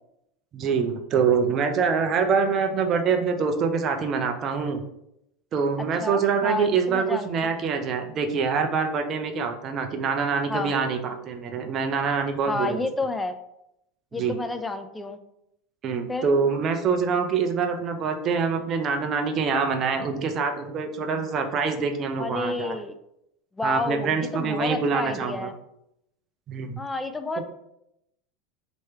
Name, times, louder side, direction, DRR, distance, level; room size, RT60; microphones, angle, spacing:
voice 1, 0.5-4.8 5.5-12.8 14.1-14.3 15.8-22.7 23.6-25.5 26.5-26.8 27.4-27.5, right 5 dB, 40° right, 5 dB, 0.6 m, -25 dB
voice 2, 6.0-7.5 10.5-10.7 12.5-13.4 14.1-15.2 16.1-16.3 22.2-22.9 23.6-25.5 26.8-27.4, left 2 dB, 15° left, 8 dB, 0.4 m, -30 dB
3.2 x 3.0 x 4.4 m, 0.80 s
hypercardioid pair, 95°, 0 cm